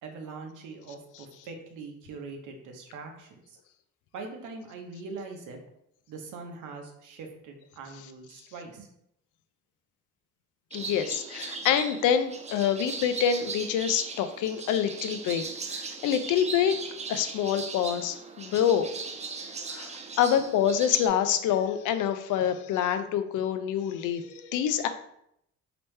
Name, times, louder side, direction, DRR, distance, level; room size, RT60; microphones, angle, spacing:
voice 1, 0.0-3.4 4.1-5.6 6.1-8.9, right 4 dB, 85° right, 3 dB, 0.8 m, -42 dB
voice 2, 10.7-15.4 15.7-16.8 17.1-18.9 19.7-24.9, left 9 dB, 85° left, 9 dB, 0.5 m, -26 dB
sound 1, 10.7-21.1, right 4 dB, 25° right, 0.4 m, -38 dB
3.3 x 2.9 x 3.1 m, 0.76 s
cardioid pair, 90°, 30 cm